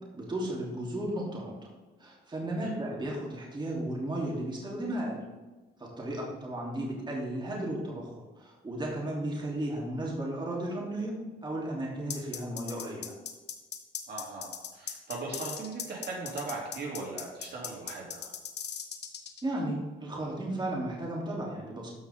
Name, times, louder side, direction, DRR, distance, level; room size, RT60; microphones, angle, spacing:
voice 1, 0.1-1.7 2.0-5.2 5.8-11.1 11.4-13.1 19.4-21.9, right 1 dB, 25° right, -4 dB, 3.3 m, -34 dB
sound 1, 12.1-19.4, left 8 dB, 55° left, 1.2 m, -38 dB
voice 2, 14.1-18.3, right 3 dB, 55° right, -3 dB, 3.2 m, -39 dB
13.5 x 5.9 x 3.7 m, 1.2 s
cardioid pair, 90°, 20 cm